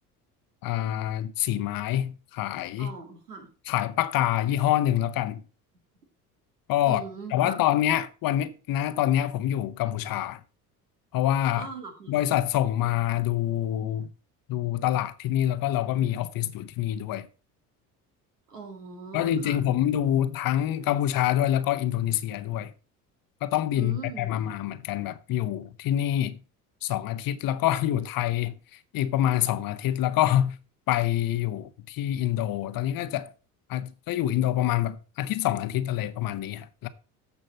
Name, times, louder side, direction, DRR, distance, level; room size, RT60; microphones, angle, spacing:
voice 1, 0.6-2.9 3.7-5.4 6.7-7.0 7.3-10.4 11.1-11.7 12.1-14.1 14.5-17.3 19.1-22.7 23.4-26.4 26.8-28.5 28.9-30.6 30.9-33.3 33.7-36.9, left 12 dB, 50° left, 1.0 m, -26 dB
voice 2, 2.8-3.5 6.8-7.6 11.5-12.2 18.5-19.6 23.8-24.3, right 4 dB, 85° right, 2.2 m, -40 dB
14.0 x 5.2 x 4.2 m
hypercardioid pair, 60°, 46 cm